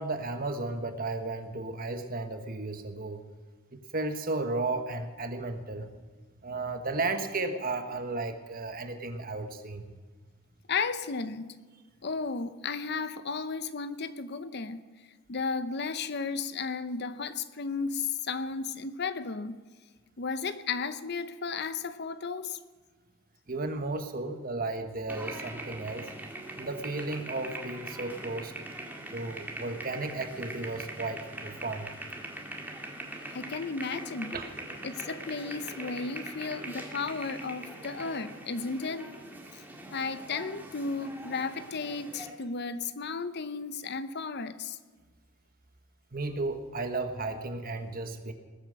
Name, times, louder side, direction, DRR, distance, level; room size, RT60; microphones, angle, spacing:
voice 1, 0.0-3.2 3.7-5.9 6.4-9.8 23.5-26.1 26.6-28.5 29.1-31.9 34.3-34.5 46.1-48.3, right 3 dB, 45° right, 7 dB, 1.3 m, -34 dB
voice 2, 10.7-11.5 12.0-14.8 15.3-19.6 20.2-22.6 33.3-34.4 34.8-39.1 39.5-39.6 39.9-44.8, left 4 dB, 55° left, 13 dB, 0.7 m, -34 dB
sound 1, 25.1-42.3, right 1 dB, 10° right, 1.9 m, -42 dB
20.0 x 8.8 x 6.5 m, 1.4 s
head